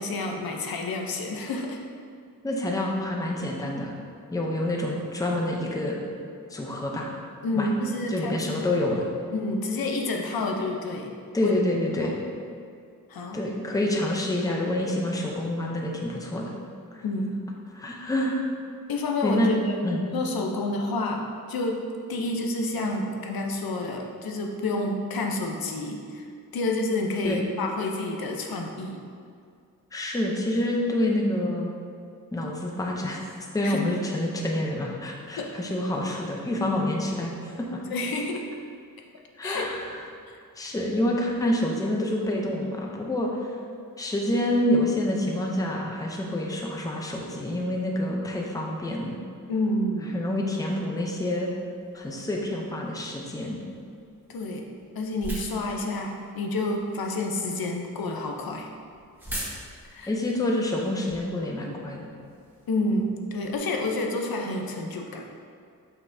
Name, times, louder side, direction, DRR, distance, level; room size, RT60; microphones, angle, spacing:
voice 1, 0.0-1.8 7.4-8.6 9.3-11.1 11.4-11.5 12.0-12.2 13.1-13.5 17.0-17.4 18.9-26.2 26.5-29.0 33.6-34.0 35.4-35.6 37.9-38.5 39.4-39.7 40.3-40.4 49.5-50.2 54.3-54.6 55.0-58.7 59.9-60.1 62.7-65.2, left 2 dB, 85° left, 2 dB, 0.7 m, -29 dB
voice 2, 2.4-4.0 4.3-6.0 6.5-7.1 7.5-7.7 8.1-9.0 11.3-12.2 13.3-16.5 17.7-18.4 19.2-19.5 19.8-20.1 27.2-27.4 29.9-31.7 32.3-33.2 33.5-37.8 39.4-39.9 40.6-43.5 44.0-49.2 50.1-51.5 51.9-53.6 60.1-62.1, left 1 dB, 10° left, -1 dB, 0.6 m, -27 dB
sound 1, 50.9-63.6, equal, 5° right, 1.2 m, -45 dB
6.6 x 5.8 x 2.7 m, 2.3 s
wide cardioid pair, 175°, 35 cm